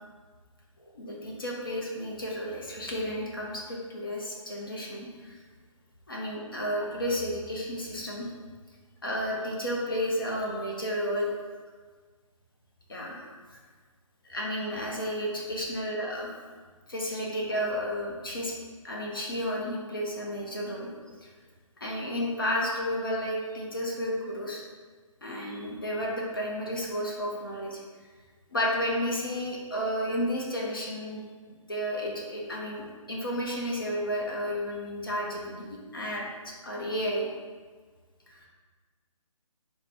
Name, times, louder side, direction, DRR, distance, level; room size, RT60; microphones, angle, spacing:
voice 1, 1.0-5.3 6.1-8.3 9.0-11.3 12.9-13.2 14.2-16.3 16.9-18.5 18.8-20.9 21.8-24.6 25.2-27.8 28.5-31.2 31.7-37.3 38.3-38.5, equal, 40° left, -3 dB, 0.6 m, -32 dB
4.1 x 2.2 x 4.2 m, 1.5 s
hypercardioid pair, 175°, 18 cm